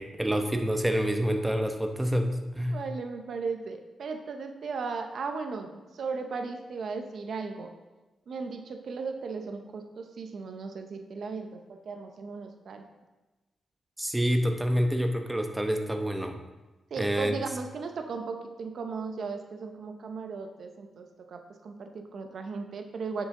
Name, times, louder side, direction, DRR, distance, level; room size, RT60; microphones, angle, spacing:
voice 1, 0.0-2.8 14.0-16.4 17.0-17.4, equal, 10° right, 5 dB, 0.9 m, -27 dB
voice 2, 2.7-7.7 8.3-12.8 16.9-23.3, right 4 dB, 70° right, 6 dB, 0.8 m, -36 dB
9.0 x 7.0 x 3.8 m, 1.1 s
cardioid pair, 70°, 0 cm